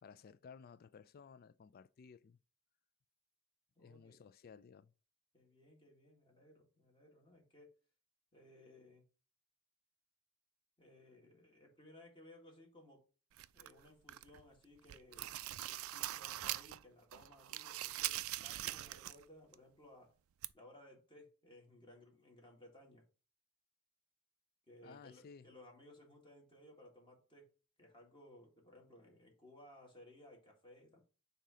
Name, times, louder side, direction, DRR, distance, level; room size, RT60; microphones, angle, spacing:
voice 1, 0.0-2.4 3.8-4.9 24.8-25.5, left 6 dB, 45° left, 0.3 m, -57 dB
voice 2, 3.8-4.2 5.3-7.8 8.3-9.1 10.8-13.1 13.5-20.2 20.5-23.1 24.7-27.5 27.8-31.0, left 1 dB, 25° left, 1.9 m, -61 dB
sound 1, 13.4-14.4 14.8-16.8 17.1-19.2 19.5-19.6 20.4-20.5, right 15 dB, 90° right, 0.3 m, -42 dB
7.2 x 2.8 x 5.0 m
head